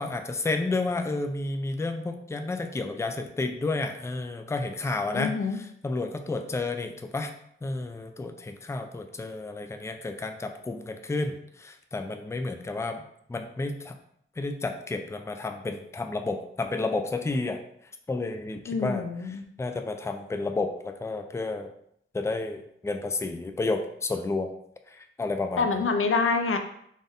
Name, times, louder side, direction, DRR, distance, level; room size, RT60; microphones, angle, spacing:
voice 1, 0.0-7.3 7.6-13.0 13.3-14.0 14.4-17.6 18.1-21.7 22.1-24.5 24.9-25.9, left 3 dB, 15° left, 6 dB, 0.3 m, -31 dB
voice 2, 5.1-5.6 18.7-19.4 25.6-26.6, left 4 dB, 75° left, 6 dB, 0.5 m, -26 dB
4.0 x 2.5 x 3.5 m, 0.70 s
wide cardioid pair, 70°, 21 cm